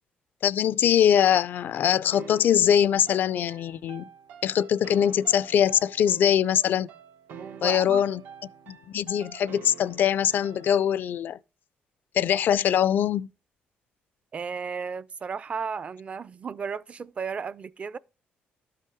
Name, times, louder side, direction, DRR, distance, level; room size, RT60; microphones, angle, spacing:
voice 1, 0.4-4.0 4.4-6.9 7.6-8.2 8.7-11.4 12.1-13.3, left 9 dB, 65° left, 0.4 m, -22 dB
sound 1, 2.1-11.0, right 8 dB, 85° right, 1.0 m, -47 dB
voice 2, 7.3-8.0 14.3-18.0, right 5 dB, 35° right, 0.4 m, -34 dB
12.0 x 5.5 x 4.9 m
cardioid pair, 110°, 4 cm